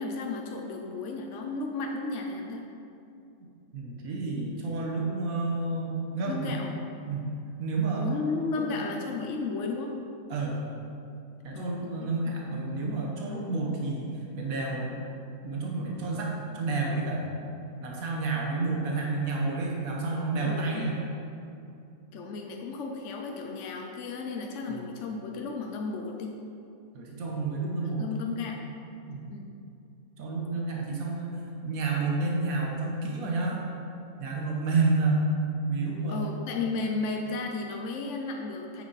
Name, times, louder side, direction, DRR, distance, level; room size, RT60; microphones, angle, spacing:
voice 1, 0.0-2.7 6.3-6.7 8.0-9.9 11.5-12.3 20.4-21.0 22.1-26.3 27.8-28.6 29.3-29.5 36.1-38.8, left 3 dB, 65° left, 2 dB, 0.9 m, -34 dB
voice 2, 3.7-6.5 7.1-7.3 7.6-8.1 8.5-8.9 10.3-10.6 11.4-14.1 14.4-14.9 15.4-17.3 17.8-20.9 24.7-24.8 26.9-28.0 29.1-29.2 30.2-33.6 34.2-35.2 35.7-36.3, right 3 dB, 80° right, -2 dB, 1.5 m, -30 dB
9.4 x 6.5 x 4.1 m, 2.6 s
omnidirectional pair, 1.5 m